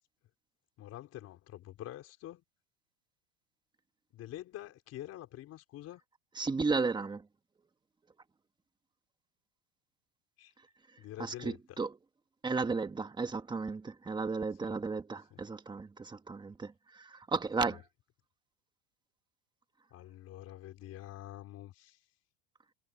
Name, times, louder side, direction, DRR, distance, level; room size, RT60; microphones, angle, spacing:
voice 1, 0.8-2.4 4.1-6.0 10.4-10.5 11.0-11.8 14.6-14.8 15.3-15.4 17.6-17.8 19.9-22.0, left 14 dB, 45° left, 4.8 m, -47 dB
voice 2, 6.4-7.2 11.2-11.9 12.4-17.8, right 4 dB, 15° right, 1.5 m, -34 dB
supercardioid pair, 130°, 35 cm